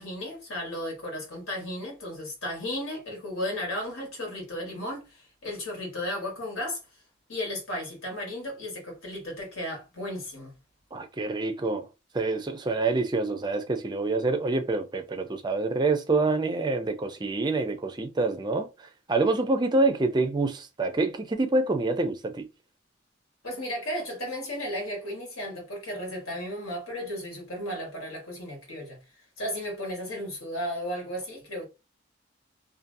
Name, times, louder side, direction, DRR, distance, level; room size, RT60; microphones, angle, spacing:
voice 1, 0.0-6.8 7.3-10.5 23.4-29.0 29.4-31.7, left 1 dB, 90° left, 1.4 m, -34 dB
voice 2, 10.9-11.9 12.1-22.5, right 3 dB, 20° right, 0.4 m, -26 dB
2.7 x 2.5 x 2.5 m
head